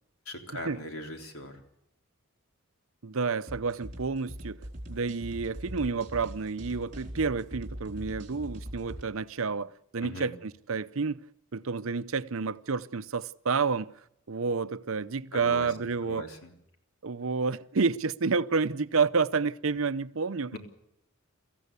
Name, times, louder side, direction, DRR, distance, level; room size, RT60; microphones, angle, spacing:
voice 1, 0.3-1.6 10.0-10.3 15.3-15.7 16.0-16.5 20.5-20.6, left 1 dB, 75° left, 3.7 m, -40 dB
voice 2, 3.0-4.6 4.9-11.2 11.5-13.9 14.3-16.3 17.0-20.6, right 4 dB, 70° right, 0.7 m, -29 dB
sound 1, 3.5-9.0, equal, 35° right, 4.2 m, -41 dB
24.0 x 15.0 x 8.2 m
head